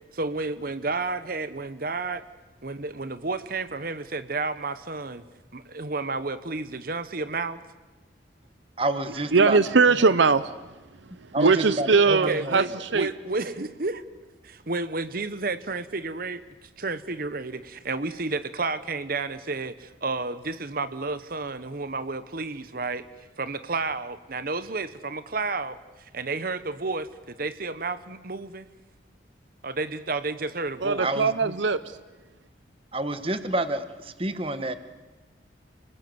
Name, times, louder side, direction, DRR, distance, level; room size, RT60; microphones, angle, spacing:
voice 1, 0.1-2.2 2.6-5.2 5.5-7.6 12.1-14.0 14.4-23.0 23.4-28.7 29.6-31.1, right 3 dB, 50° right, 13 dB, 1.0 m, -31 dB
voice 2, 8.8-9.6 11.3-12.6 31.0-31.5 32.9-34.7, right 2 dB, 30° right, 11 dB, 1.4 m, -29 dB
voice 3, 9.3-10.5 11.2-13.1 30.8-32.0, right 4 dB, 75° right, 14 dB, 0.7 m, -21 dB
29.5 x 20.5 x 7.8 m, 1.2 s
head